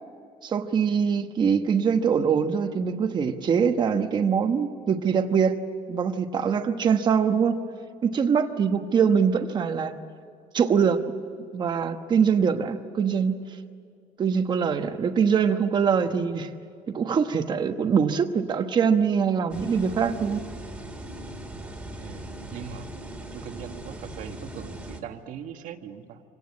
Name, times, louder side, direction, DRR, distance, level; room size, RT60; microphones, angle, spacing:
voice 1, 0.4-5.6 5.9-7.6 8.0-9.9 10.5-11.0 11.5-13.6 14.2-16.5 16.9-20.4, right 6 dB, 30° right, 6 dB, 1.1 m, -23 dB
sound 1, 19.5-25.0, right 1 dB, 5° right, 2.2 m, -39 dB
voice 2, 21.6-22.9 23.3-26.2, right 8 dB, 60° right, 6 dB, 1.6 m, -41 dB
25.5 x 18.0 x 9.6 m, 2.3 s
cardioid pair, 165°, 15 cm